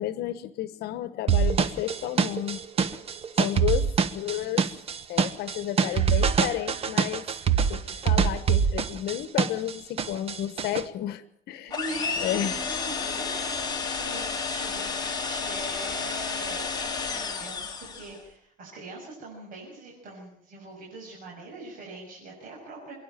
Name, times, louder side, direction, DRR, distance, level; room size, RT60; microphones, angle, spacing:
voice 1, 0.0-2.6 3.4-4.7 5.1-7.2 7.7-11.8 12.2-12.6, left 12 dB, 75° left, 13 dB, 1.2 m, -32 dB
sound 1, 1.3-9.7 10.0-10.8, right 6 dB, 35° right, 1.2 m, -24 dB
voice 2, 11.6-16.7 17.1-22.9, right 2 dB, 55° right, -3 dB, 7.1 m, -42 dB
sound 2, 11.7-18.2, left 5 dB, 25° left, 3.0 m, -31 dB
27.5 x 11.5 x 9.1 m, 0.72 s
cardioid pair, 150°, 17 cm